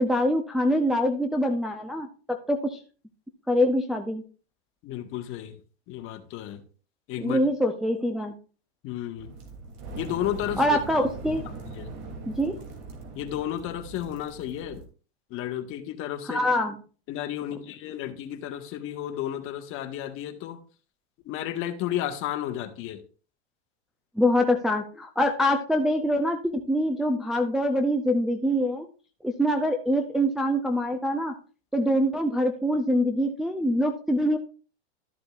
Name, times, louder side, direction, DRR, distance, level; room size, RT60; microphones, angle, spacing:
voice 1, 0.0-2.8 3.5-4.2 7.2-8.4 10.6-11.4 12.3-12.6 16.2-16.8 24.2-28.9 29.2-31.4 31.7-34.4, equal, ahead, 2 dB, 0.5 m, -24 dB
voice 2, 4.8-5.6 5.9-6.6 7.1-7.4 8.8-9.4 10.0-10.6 11.7-11.9 13.1-14.8 15.3-16.5 17.1-20.6 21.2-23.0, left 12 dB, 40° left, 6 dB, 1.5 m, -32 dB
sound 1, 9.2-14.8, right 3 dB, 50° right, 3.0 m, -40 dB
13.0 x 7.6 x 2.5 m, 0.38 s
supercardioid pair, 135°, 34 cm